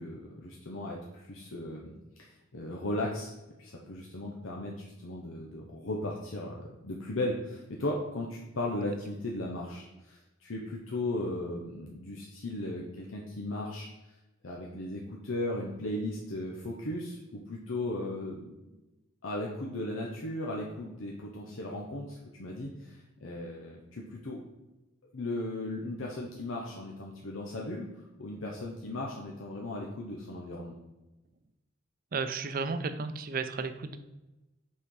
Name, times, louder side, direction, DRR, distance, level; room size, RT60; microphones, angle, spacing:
voice 1, 0.0-3.3 3.6-6.6 6.8-13.9 14.4-18.5 19.2-24.4 25.1-30.8, left 1 dB, 85° left, -2 dB, 0.9 m, -36 dB
voice 2, 32.1-34.0, right 4 dB, 45° right, 10 dB, 0.5 m, -33 dB
5.6 x 4.4 x 4.8 m, 1.0 s
head